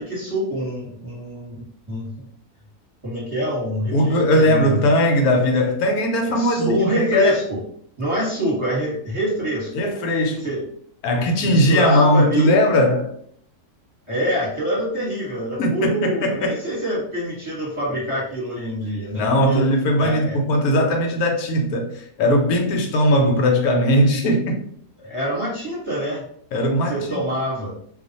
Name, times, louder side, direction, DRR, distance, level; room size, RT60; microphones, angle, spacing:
voice 1, 0.0-2.3 3.0-4.8 6.3-7.6 8.0-9.7 10.4-10.6 11.1-12.6 14.1-19.7 20.0-20.4 25.0-26.2 26.9-27.7, equal, 20° right, 1.0 m, -26 dB
voice 2, 3.9-7.4 9.7-10.5 11.0-13.1 15.6-16.6 19.1-24.6 26.5-27.2, left 1 dB, 80° left, 1.1 m, -19 dB
2.5 x 2.4 x 3.9 m
omnidirectional pair, 1.6 m